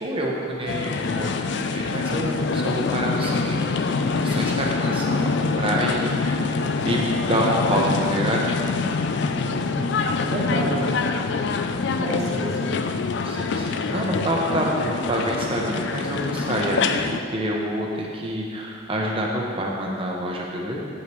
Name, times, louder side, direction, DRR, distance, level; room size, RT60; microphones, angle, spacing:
voice 1, 0.0-6.5 6.8-8.5 10.5-10.6 13.2-17.0 17.3-20.8, right 1 dB, 25° right, -2 dB, 0.9 m, -27 dB
sound 1, 0.7-17.2, left 4 dB, 55° left, 0.3 m, -25 dB
voice 2, 9.3-9.8 10.2-11.0 11.3-11.5 12.0-12.8, equal, 50° right, -4 dB, 1.4 m, -29 dB
8.4 x 8.2 x 3.1 m, 2.4 s
head